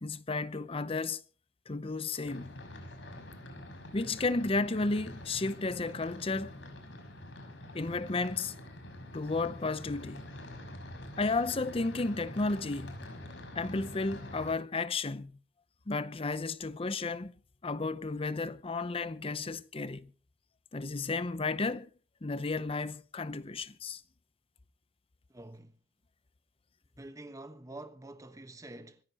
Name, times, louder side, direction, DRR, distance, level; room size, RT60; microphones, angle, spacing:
voice 1, 0.0-1.2 1.7-2.6 3.9-6.5 7.7-8.5 9.1-10.3 11.2-13.0 13.5-15.3 15.9-17.3 17.6-20.1 20.7-21.9 22.2-24.0, left 3 dB, 30° left, 0.7 m, -33 dB
sound 1, 2.2-14.5, left 1 dB, 80° left, 5.6 m, -46 dB
voice 2, 25.3-25.8 27.0-29.0, right 2 dB, 20° right, 1.3 m, -47 dB
26.0 x 14.0 x 3.0 m
head